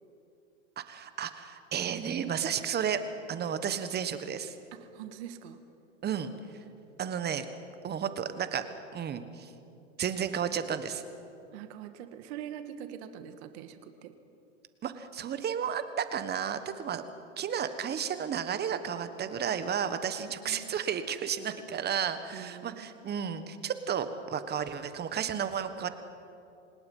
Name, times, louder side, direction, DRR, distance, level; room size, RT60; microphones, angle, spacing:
voice 1, 0.8-3.0 3.3-4.5 6.0-6.3 7.0-7.5 7.8-8.6 8.9-9.5 10.0-11.0 14.8-17.0 17.4-25.9, right 8 dB, 25° right, 11 dB, 1.4 m, -32 dB
voice 2, 4.7-5.6 11.5-14.2 20.4-20.7 22.3-22.9, right 10 dB, 60° right, 9 dB, 1.7 m, -44 dB
26.5 x 19.0 x 5.6 m, 2.6 s
hypercardioid pair, 115°, 37 cm